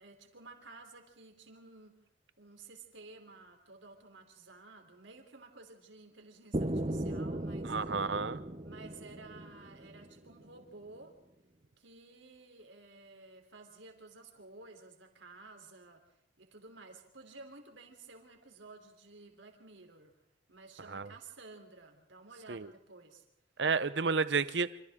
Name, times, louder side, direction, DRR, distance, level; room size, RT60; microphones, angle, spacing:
voice 1, 0.0-2.0 2.4-7.8 8.6-11.1 11.8-16.1 16.4-20.1 20.5-23.3, right 3 dB, 85° right, 3 dB, 3.6 m, -53 dB
sound 1, 6.5-10.4, right 1 dB, 30° right, 0.9 m, -37 dB
voice 2, 7.6-8.4 20.9-21.1 22.5-22.7 23.6-24.7, right 5 dB, 65° right, 15 dB, 0.8 m, -31 dB
28.0 x 26.5 x 3.8 m, 0.82 s
head